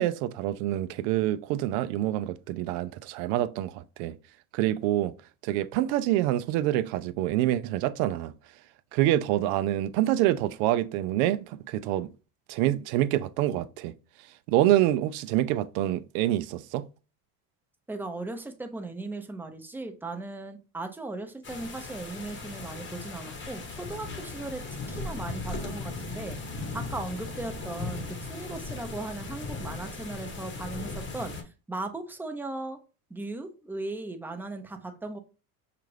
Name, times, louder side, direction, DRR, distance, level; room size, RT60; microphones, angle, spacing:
voice 1, 0.0-4.2 4.5-5.1 5.4-8.3 8.9-12.1 12.5-13.9 14.5-16.8, right 14 dB, 80° right, 0.5 m, -26 dB
voice 2, 17.9-24.6 24.9-28.0 28.3-31.4 31.7-32.8 33.1-35.2, right 2 dB, 5° right, 0.6 m, -37 dB
sound 1, 21.4-31.4, left 3 dB, 25° left, 0.9 m, -37 dB
5.7 x 2.5 x 3.2 m
supercardioid pair, 100°, 43 cm